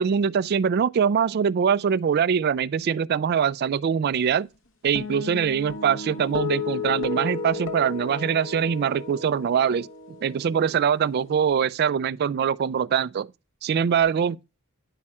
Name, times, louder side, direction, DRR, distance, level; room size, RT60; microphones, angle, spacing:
voice 1, 0.0-4.5 4.8-9.9 10.2-13.3 13.6-14.4, right 7 dB, 50° right, 0.3 m, -23 dB
sound 1, 5.0-11.5, left 5 dB, 65° left, 1.2 m, -34 dB
9.9 x 4.8 x 4.2 m
head